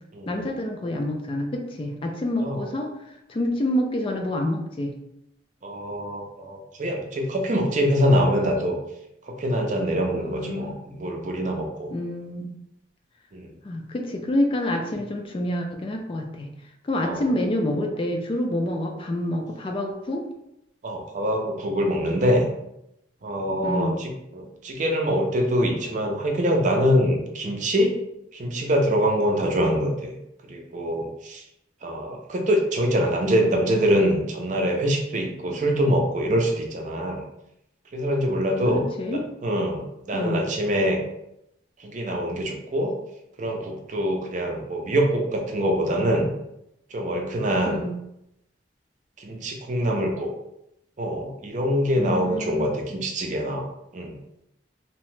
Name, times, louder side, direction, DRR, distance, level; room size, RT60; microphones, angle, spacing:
voice 1, 0.3-4.9 10.1-10.8 11.9-12.5 13.6-16.5 16.8-20.2 23.6-24.0 38.7-39.2 40.1-40.4 47.7-48.0 52.0-52.7, left 1 dB, 30° left, 3 dB, 0.3 m, -27 dB
voice 2, 5.6-8.8 9.2-11.9 13.3-13.5 17.0-17.3 20.8-22.5 23.2-27.9 28.3-30.1 30.4-31.4 31.8-37.2 37.9-38.8 39.4-41.0 41.8-43.0 43.4-46.3 46.9-47.8 49.2-50.3 51.0-53.6 53.9-54.2, equal, 45° right, 2 dB, 0.5 m, -24 dB
2.8 x 2.1 x 3.1 m, 0.81 s
head